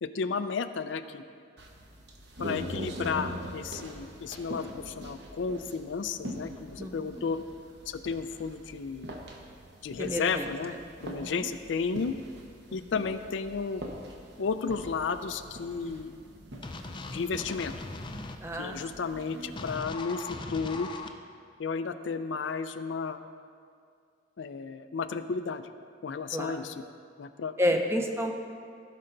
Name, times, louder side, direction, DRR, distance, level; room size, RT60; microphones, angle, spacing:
voice 1, 0.0-1.2 2.4-7.4 7.9-9.1 9.8-10.7 11.0-12.2 12.7-13.8 14.4-16.1 17.1-17.7 18.6-20.9 21.6-23.2 24.4-25.6 26.0-26.8 27.2-27.5, left 5 dB, 80° left, 10 dB, 0.4 m, -33 dB
sound 1, 1.6-19.8, equal, 65° right, 1.2 m, -43 dB
voice 2, 10.0-10.5 11.2-11.3 18.4-18.7 26.3-26.5 27.6-28.3, equal, 15° right, 3 dB, 0.7 m, -29 dB
sound 2, 16.6-18.4 19.6-21.1, left 3 dB, 25° left, 0.5 m, -39 dB
16.5 x 5.5 x 3.9 m, 2.2 s
head